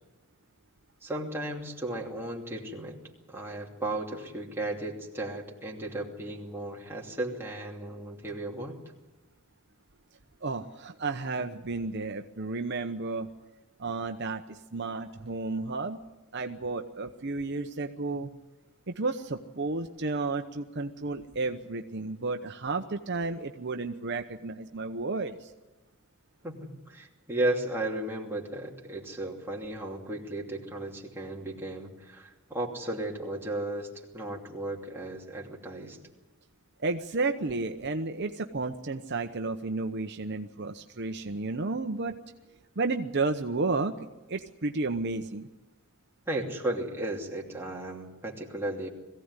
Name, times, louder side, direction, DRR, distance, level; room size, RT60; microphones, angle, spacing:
voice 1, 1.0-3.0 3.3-8.7 26.4-36.0 46.3-48.9, right 1 dB, 10° right, -2 dB, 2.8 m, -35 dB
voice 2, 10.4-13.3 13.8-16.0 16.3-18.3 18.9-25.5 36.8-42.2 42.8-45.5, right 3 dB, 50° right, 6 dB, 0.9 m, -32 dB
21.5 x 16.0 x 9.8 m, 1.1 s
head